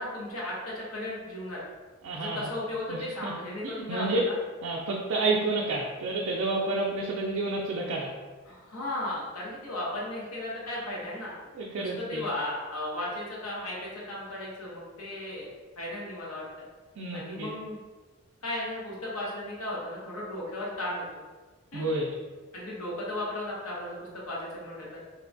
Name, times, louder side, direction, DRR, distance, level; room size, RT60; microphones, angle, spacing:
voice 1, 0.0-1.6 2.1-4.3 8.5-11.3 11.8-16.4 17.1-17.8 18.4-21.2 21.7-21.9 22.5-25.0, left 1 dB, 90° left, -6 dB, 0.9 m, -35 dB
voice 2, 2.0-2.5 2.9-3.3 3.9-4.2 4.6-8.1 11.5-12.2 17.0-17.5 21.7-22.1, right 2 dB, 70° right, -2 dB, 0.3 m, -30 dB
2.8 x 2.2 x 2.5 m, 1.3 s
head